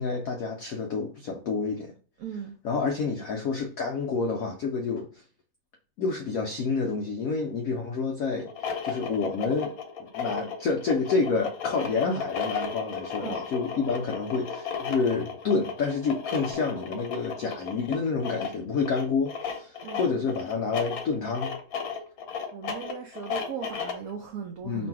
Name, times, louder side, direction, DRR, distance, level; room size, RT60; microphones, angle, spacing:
voice 1, 0.0-1.9 2.6-5.2 6.0-9.7 10.0-21.6 24.6-24.9, left 4 dB, 80° left, 0.7 m, -29 dB
voice 2, 2.2-2.6 13.2-13.4 19.8-20.1 22.5-24.9, right 7 dB, 85° right, 0.7 m, -38 dB
sound 1, 8.4-24.1, left 6 dB, 60° left, 1.0 m, -34 dB
3.1 x 2.6 x 4.4 m
omnidirectional pair, 2.1 m